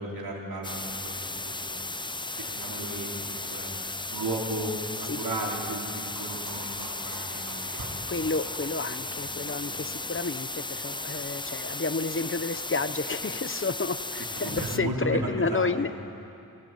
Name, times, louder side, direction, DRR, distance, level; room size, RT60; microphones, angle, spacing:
voice 1, 0.0-1.8 2.3-3.1 3.5-3.7 4.1-8.4 9.1-9.4 9.7-9.8 14.2-16.0, right 1 dB, 85° right, -2 dB, 4.5 m, -35 dB
sound 1, 0.6-14.8, left 2 dB, 15° left, 0.5 m, -35 dB
sound 2, 6.1-15.2, right 1 dB, 55° right, 5.3 m, -50 dB
voice 2, 8.1-15.9, left 4 dB, 35° left, 11 dB, 0.9 m, -31 dB
25.0 x 20.0 x 9.2 m, 2.6 s
wide cardioid pair, 90°, 36 cm